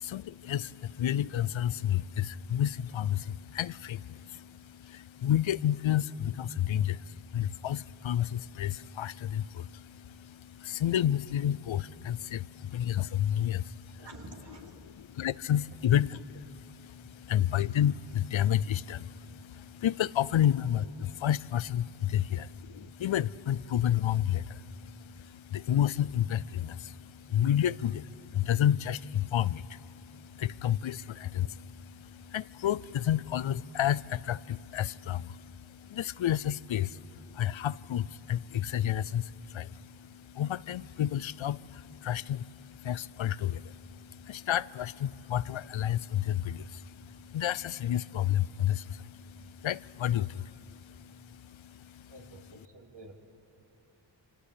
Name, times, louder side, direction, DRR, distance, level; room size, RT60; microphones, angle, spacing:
voice 1, 0.0-14.0 15.2-16.1 16.5-22.4 22.8-52.1, left 11 dB, 90° left, 20 dB, 0.6 m, -31 dB
voice 2, 14.0-15.0 15.7-15.8 17.2-17.4 22.3-22.4 52.1-53.1, right 2 dB, 65° right, 1 dB, 3.3 m, -50 dB
28.0 x 25.5 x 8.4 m, 2.7 s
wide cardioid pair, 75°, 45 cm